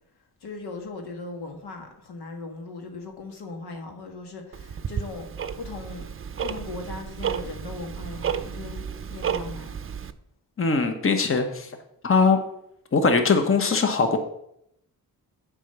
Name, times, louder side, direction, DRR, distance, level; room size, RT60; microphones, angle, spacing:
voice 1, 0.4-5.3 5.6-6.1 6.4-9.7, left 3 dB, 85° left, 3 dB, 1.6 m, -38 dB
Tick-tock, 4.5-10.1, right 7 dB, 35° right, 0.6 m, -32 dB
voice 2, 10.6-11.7 12.0-12.4 12.9-14.2, left 4 dB, 35° left, 6 dB, 1.1 m, -21 dB
7.4 x 5.0 x 6.8 m, 0.75 s
cardioid pair, 80°, 38 cm